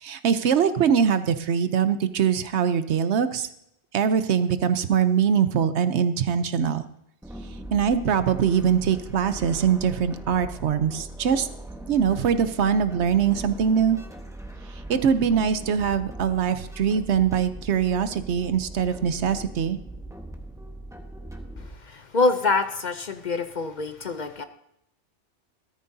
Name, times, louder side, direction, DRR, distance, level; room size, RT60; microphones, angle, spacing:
voice 1, 0.0-3.5 3.9-6.8 7.7-11.5 11.9-14.0 14.9-19.8, right 7 dB, 75° right, 12 dB, 1.0 m, -22 dB
sound 1, 7.2-21.7, right 1 dB, 5° right, 1.1 m, -40 dB
voice 2, 21.8-24.4, left 3 dB, 50° left, 9 dB, 0.7 m, -25 dB
14.0 x 13.5 x 2.7 m, 0.80 s
omnidirectional pair, 1.2 m